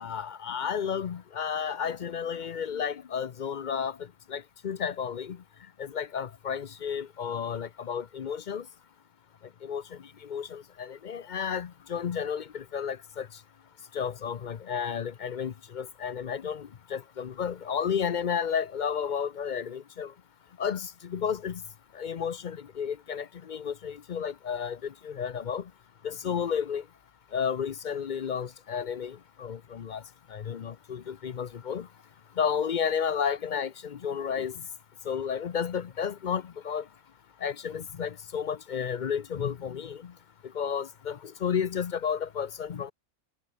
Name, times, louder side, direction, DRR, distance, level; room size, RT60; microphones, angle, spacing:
voice 1, 0.0-4.0 4.3-5.4 5.8-8.6 9.6-9.8 10.2-13.3 13.9-20.1 20.6-21.6 21.9-25.6 26.0-26.8 27.3-30.0 30.3-31.9 32.4-34.5 35.0-36.8 37.4-40.1 40.5-42.9, left 7 dB, 50° left, 0.5 m, -32 dB
omnidirectional pair, 1.5 m